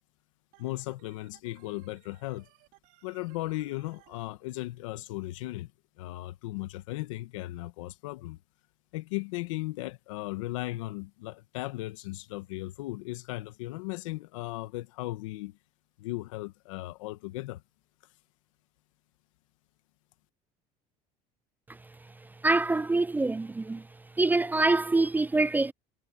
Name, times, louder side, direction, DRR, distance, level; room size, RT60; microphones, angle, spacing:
Organ, 0.5-4.2, right 22 dB, 75° right, 5.2 m, -61 dB
voice 1, 0.6-2.5 3.0-5.7 6.0-8.4 8.9-15.6 16.0-17.6, left 18 dB, 90° left, 1.7 m, -36 dB
voice 2, 22.4-23.8 24.2-25.7, right 2 dB, 10° right, 0.4 m, -25 dB
supercardioid pair, 100°, 16 cm